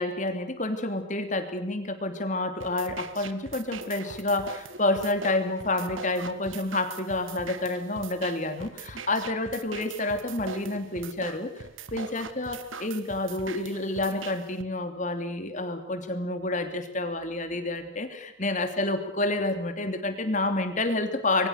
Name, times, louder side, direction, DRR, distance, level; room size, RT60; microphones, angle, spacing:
voice 1, 0.0-11.6 11.9-21.5, left 2 dB, 40° left, 7 dB, 3.1 m, -29 dB
sound 1, 2.6-14.6, right 4 dB, 80° right, 1.8 m, -42 dB
27.5 x 22.5 x 6.7 m, 0.75 s
head